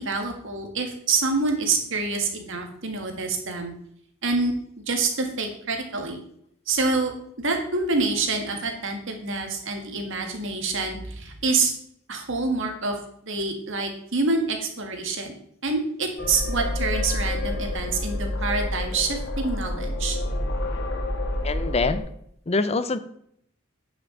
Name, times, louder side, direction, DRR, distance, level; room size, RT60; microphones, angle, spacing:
voice 1, 0.0-3.7 4.2-4.5 4.9-6.2 6.7-7.1 7.4-11.7 12.1-13.0 13.2-15.4 15.6-20.2, right 3 dB, 65° right, 4 dB, 1.8 m, -26 dB
sound 1, 16.2-22.0, left 1 dB, 55° left, 1.6 m, -28 dB
voice 2, 21.4-22.1 22.5-23.0, left 3 dB, 30° left, 13 dB, 0.6 m, -24 dB
9.6 x 6.0 x 5.2 m, 0.69 s
head